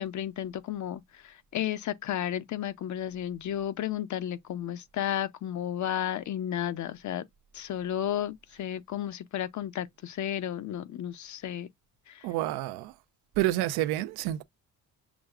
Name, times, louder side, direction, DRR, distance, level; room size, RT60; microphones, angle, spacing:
voice 1, 0.0-7.3 7.5-11.7 12.1-12.3, left 11 dB, 50° left, 0.6 m, -33 dB
voice 2, 12.2-12.9 13.4-14.4, right 15 dB, 85° right, 0.6 m, -28 dB
6.0 x 2.2 x 2.3 m
supercardioid pair, 75°, 37 cm